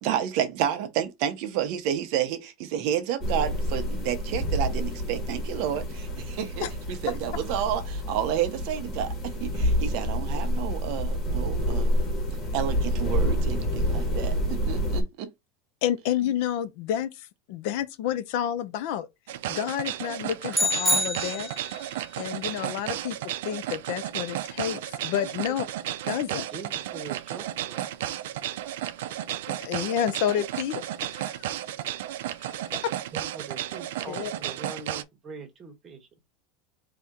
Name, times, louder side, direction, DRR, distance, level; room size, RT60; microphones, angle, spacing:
voice 1, 0.0-12.0 12.5-15.3, right 10 dB, 50° right, 0.8 m, -30 dB
sound 1, 3.2-15.0, equal, 30° left, 1.5 m, -28 dB
voice 2, 15.8-19.1 19.5-21.5 22.2-23.2 23.4-25.7 26.1-26.5 29.5-30.8 31.1-31.5 32.4-32.6 32.8-32.9 34.1-34.3, left 10 dB, 55° left, 0.5 m, -29 dB
sound 2, 19.3-35.0, right 12 dB, 85° right, 0.4 m, -33 dB
sound 3, 20.5-21.9, left 1 dB, ahead, 0.6 m, -26 dB
voice 3, 26.3-28.0 33.1-36.1, right 4 dB, 20° right, 1.2 m, -42 dB
4.1 x 2.7 x 3.6 m
supercardioid pair, 170°, 0 cm